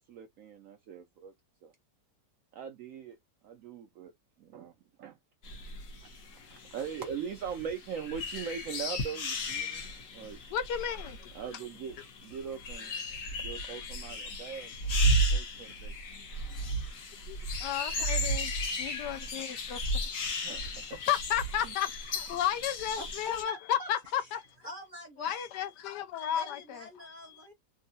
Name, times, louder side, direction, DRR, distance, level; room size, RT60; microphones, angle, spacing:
voice 1, 0.0-1.3 1.6-1.7 2.5-3.2 3.4-4.1 4.4-5.2 6.0-6.1 6.7-9.8 10.1-10.4 11.3-12.9 13.4-15.9 19.1-19.5 20.0-20.1 20.4-21.0 21.6-21.8, right 7 dB, 70° right, 0.8 m, -41 dB
sound 1, 5.4-23.4, equal, 55° left, 1.2 m, -34 dB
voice 2, 10.5-11.3 12.8-13.0 13.4-13.9 14.3-14.8 15.2-15.7 17.3-18.5 18.8-20.4 21.0-24.4 25.2-27.1, left 10 dB, 80° left, 1.2 m, -34 dB
voice 3, 23.0-25.4 26.3-27.5, right 1 dB, 40° right, 0.8 m, -46 dB
3.6 x 2.1 x 2.6 m
omnidirectional pair, 1.8 m